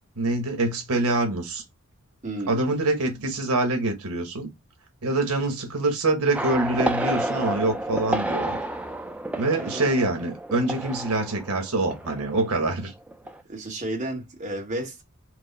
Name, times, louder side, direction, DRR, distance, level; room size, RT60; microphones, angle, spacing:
voice 1, 0.2-1.6 2.5-4.5 5.0-8.6 9.4-12.9, right 2 dB, 80° right, 1.1 m, -25 dB
voice 2, 2.2-2.6 9.6-9.9 13.5-15.0, right 1 dB, 35° right, 1.2 m, -32 dB
sound 1, 6.3-12.8 13.1-13.4, right 1 dB, 5° right, 0.3 m, -30 dB
4.6 x 2.0 x 3.9 m
head